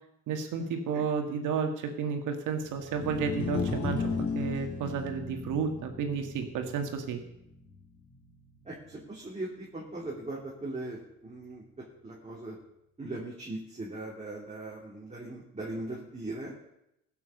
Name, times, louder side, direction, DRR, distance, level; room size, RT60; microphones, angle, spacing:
voice 1, 0.3-4.1 4.4-7.2, right 6 dB, 85° right, 5 dB, 2.0 m, -32 dB
sound 1, 2.9-9.2, left 4 dB, 70° left, 3.8 m, -36 dB
voice 2, 8.6-12.6 13.0-16.5, right 2 dB, 25° right, -5 dB, 3.1 m, -39 dB
16.0 x 7.1 x 6.6 m, 0.82 s
cardioid pair, 90°, 30 cm